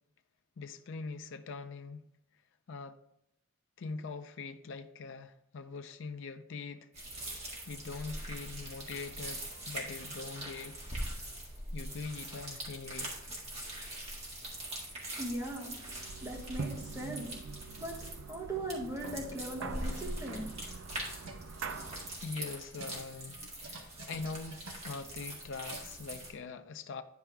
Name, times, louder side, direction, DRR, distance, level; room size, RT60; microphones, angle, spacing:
voice 1, 0.6-2.0 2.7-3.0 3.8-6.9 7.4-10.8 11.7-13.1 22.2-27.0, left 4 dB, 55° left, 0.4 m, -43 dB
sound 1, 6.9-26.3, right 1 dB, 30° right, 1.9 m, -43 dB
voice 2, 15.2-15.9 16.2-17.4 17.8-17.9 18.2-20.5, right 1 dB, 15° right, 1.3 m, -39 dB
sound 2, 15.7-22.2, right 4 dB, 60° right, 0.5 m, -44 dB
sound 3, 21.2-26.3, right 2 dB, 80° right, 1.1 m, -52 dB
10.5 x 4.7 x 3.4 m
head